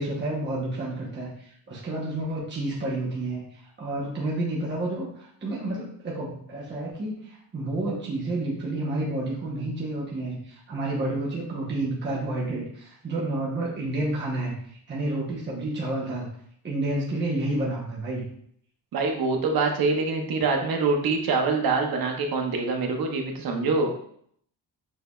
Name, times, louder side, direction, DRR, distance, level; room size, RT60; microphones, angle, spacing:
voice 1, 0.0-3.4 3.8-16.3 16.6-18.3, right 2 dB, 25° right, -5 dB, 0.9 m, -30 dB
voice 2, 18.9-23.9, right 4 dB, 55° right, 3 dB, 0.8 m, -25 dB
6.3 x 3.3 x 2.3 m, 0.65 s
wide cardioid pair, 175°, 42 cm